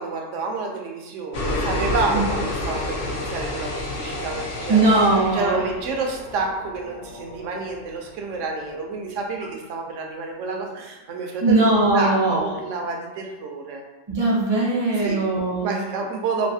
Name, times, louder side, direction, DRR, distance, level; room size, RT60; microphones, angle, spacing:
voice 1, 0.0-4.9 5.3-13.8 15.0-15.3 15.6-16.5, right 3 dB, 75° right, 1 dB, 0.9 m, -29 dB
sound 1, 1.3-8.2, left 1 dB, 65° left, 0.9 m, -30 dB
voice 2, 4.7-5.6 11.4-12.5 14.1-15.7, right 2 dB, 30° right, -5 dB, 0.5 m, -20 dB
3.1 x 2.6 x 2.7 m, 1.0 s
omnidirectional pair, 1.3 m